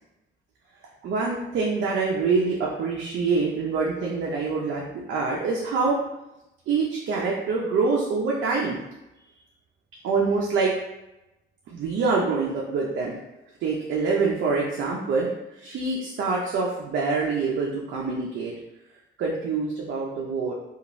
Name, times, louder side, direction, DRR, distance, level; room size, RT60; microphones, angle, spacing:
voice 1, 1.0-4.8 5.1-6.0 6.7-8.8 10.0-10.7 11.7-13.1 13.6-15.3 15.6-18.5 19.2-20.5, right 4 dB, 70° right, -3 dB, 0.5 m, -25 dB
2.9 x 2.4 x 2.5 m, 0.94 s
cardioid pair, 90°, 20 cm